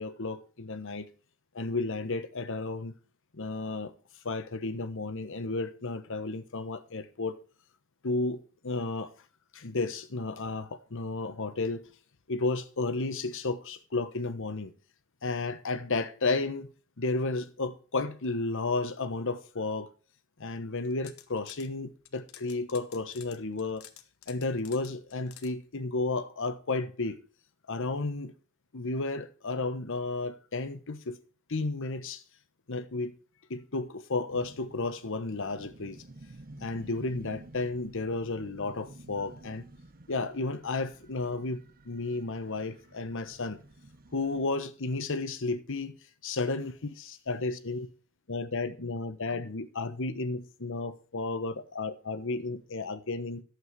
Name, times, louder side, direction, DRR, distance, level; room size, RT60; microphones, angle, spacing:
voice 1, 0.0-1.1 1.5-2.9 3.3-3.9 4.2-7.4 8.0-9.1 9.5-11.8 12.3-14.7 15.2-16.7 17.0-19.9 20.4-23.8 24.3-27.2 27.7-28.3 28.7-31.2 31.5-32.2 32.7-33.1 33.5-36.0 36.6-39.7 40.1-43.6 44.1-46.0 46.2-47.9 48.3-53.4, left 3 dB, 65° left, 1.1 m, -33 dB
sound 1, 20.8-21.7 22.1-25.5, left 11 dB, 85° left, 1.2 m, -51 dB
sound 2, 34.3-44.5, right 2 dB, 45° right, 0.9 m, -51 dB
11.0 x 7.9 x 4.7 m
head